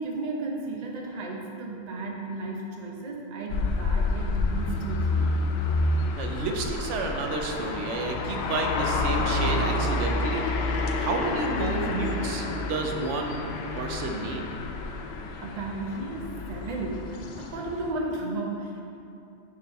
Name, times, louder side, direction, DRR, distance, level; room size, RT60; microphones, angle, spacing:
voice 1, 0.0-5.3 15.4-18.9, right 2 dB, 40° right, -1 dB, 0.8 m, -34 dB
sound 1, 3.5-17.9, left 2 dB, 65° left, 0.8 m, -29 dB
voice 2, 6.2-10.4 11.0-14.5, right 3 dB, 85° right, 2 dB, 1.0 m, -31 dB
6.7 x 3.7 x 5.4 m, 2.7 s
omnidirectional pair, 1.2 m